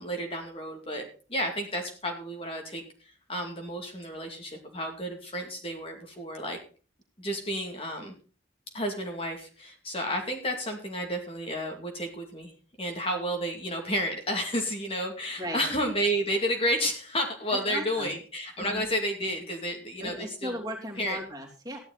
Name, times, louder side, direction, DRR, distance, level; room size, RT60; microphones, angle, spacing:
voice 1, 0.0-2.8 3.3-6.6 7.2-8.1 8.7-12.5 12.8-20.5 21.0-21.2, equal, 30° left, 2 dB, 2.3 m, -31 dB
voice 2, 17.7-18.1 18.6-18.9 20.0-21.8, equal, 20° right, 1 dB, 3.0 m, -37 dB
14.5 x 10.5 x 4.1 m, 0.38 s
head